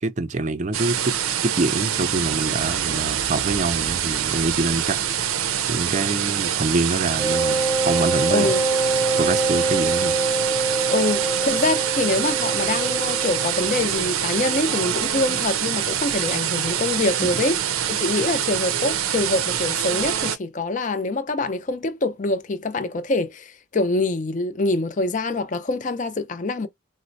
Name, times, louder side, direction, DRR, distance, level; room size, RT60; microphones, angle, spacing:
voice 1, 0.0-1.2 1.4-5.0 5.7-8.5 9.2-10.2, right 3 dB, 35° right, 0.4 m, -25 dB
sound 1, 0.7-20.4, right 10 dB, 90° right, 0.5 m, -25 dB
sound 2, 1.7-9.8, equal, 70° left, 0.7 m, -42 dB
Wind instrument woodwind instrument, 7.2-13.8, right 3 dB, 5° right, 0.7 m, -25 dB
voice 2, 8.3-8.6 10.9-17.6 17.9-26.7, left 2 dB, 35° left, 0.5 m, -25 dB
4.1 x 2.0 x 2.6 m
head